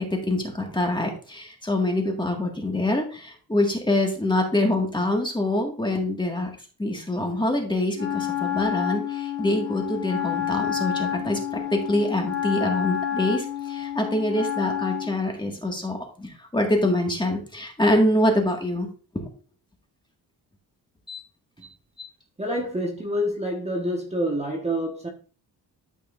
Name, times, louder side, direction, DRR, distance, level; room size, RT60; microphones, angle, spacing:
voice 1, 0.0-6.5 6.8-11.4 11.7-18.9 19.1-19.3 21.1-21.2 22.0-22.1, left 1 dB, 10° left, 1 dB, 2.0 m, -25 dB
Wind instrument woodwind instrument, 7.9-15.2, left 10 dB, 50° left, 3.1 m, -29 dB
voice 2, 22.4-25.1, equal, 15° right, 0 dB, 1.5 m, -27 dB
12.5 x 5.4 x 2.6 m, 0.37 s
cardioid pair, 125°, 39 cm